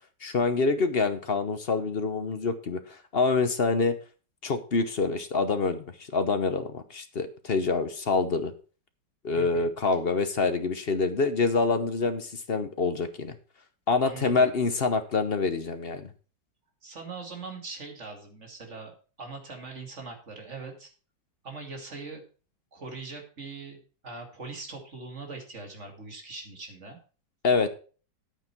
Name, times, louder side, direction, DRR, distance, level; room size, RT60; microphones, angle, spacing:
voice 1, 0.2-4.0 4.4-5.8 6.1-8.5 9.2-13.3 13.9-16.1 27.4-27.7, left 4 dB, 45° left, 9 dB, 0.9 m, -26 dB
voice 2, 9.3-9.7 14.0-14.5 16.8-20.9 21.4-22.2 22.7-27.0, right 4 dB, 40° right, 3 dB, 2.6 m, -41 dB
9.8 x 9.0 x 4.5 m, 0.37 s
omnidirectional pair, 1.9 m